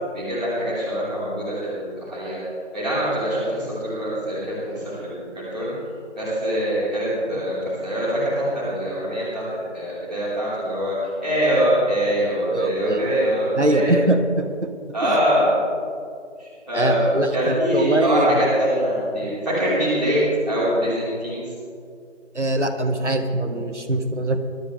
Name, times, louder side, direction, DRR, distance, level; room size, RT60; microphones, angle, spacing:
voice 1, 0.1-2.4 2.7-5.7 6.1-7.6 7.8-10.9 11.2-14.0 14.9-15.6 16.4-21.5, equal, ahead, -21 dB, 1.7 m, -23 dB
voice 2, 12.5-13.2 13.6-14.7 15.0-15.2 16.7-18.4 22.4-24.4, right 1 dB, 70° right, 6 dB, 1.8 m, -22 dB
22.0 x 12.5 x 3.5 m, 2.3 s
figure-of-eight pair, 175°, 37 cm